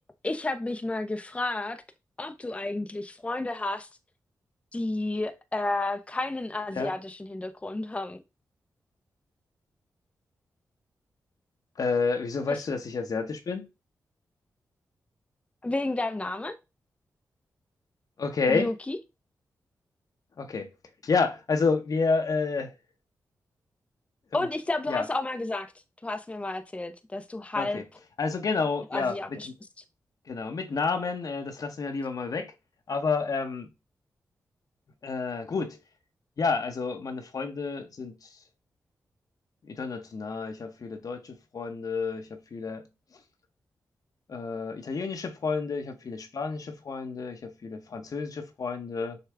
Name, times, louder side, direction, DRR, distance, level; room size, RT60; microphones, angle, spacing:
voice 1, 0.2-1.8 2.2-3.9 4.7-8.2 12.5-12.6 15.6-16.6 18.5-19.0 24.3-25.7 26.0-27.8 28.9-29.5, left 2 dB, 20° left, 0.5 m, -31 dB
voice 2, 11.8-13.7 18.2-18.7 20.4-20.7 21.0-22.7 24.3-24.5 24.9-25.1 27.5-27.8 28.2-29.5 30.3-32.5 32.9-33.7 35.0-35.8 36.4-38.4 39.6-42.9 44.3-49.2, left 4 dB, 60° left, 0.9 m, -30 dB
6.6 x 2.3 x 3.4 m
cardioid pair, 45°, 7 cm